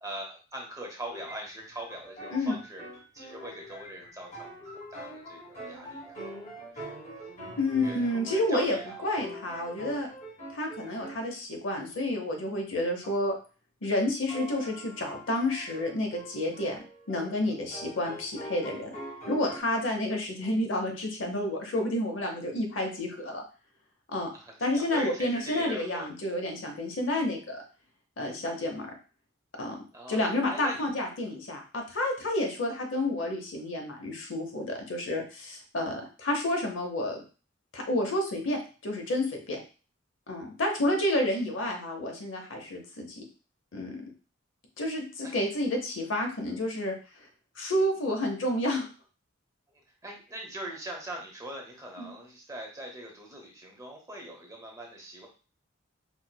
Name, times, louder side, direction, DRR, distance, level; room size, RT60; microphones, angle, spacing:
voice 1, 0.0-2.8 3.1-4.6 4.9-7.0 7.5-9.1 24.1-26.1 29.9-30.2 30.5-30.9 45.2-45.3 49.7-55.3, right 1 dB, 15° right, 0 dB, 0.7 m, -42 dB
sound 1, 1.1-11.3 13.0-13.2 14.3-19.6, equal, 40° left, 1.4 m, -44 dB
voice 2, 7.6-8.8 9.0-10.1 10.5-13.3 13.8-16.8 17.1-18.9 19.3-23.4 24.1-24.3 24.6-27.6 28.2-28.9 29.6-29.8 30.1-37.2 37.7-39.6 40.3-43.2 43.7-44.0 44.8-46.9 47.6-48.9 52.0-52.1, left 1 dB, 70° left, 3 dB, 0.7 m, -30 dB
4.3 x 2.1 x 2.2 m, 0.36 s
head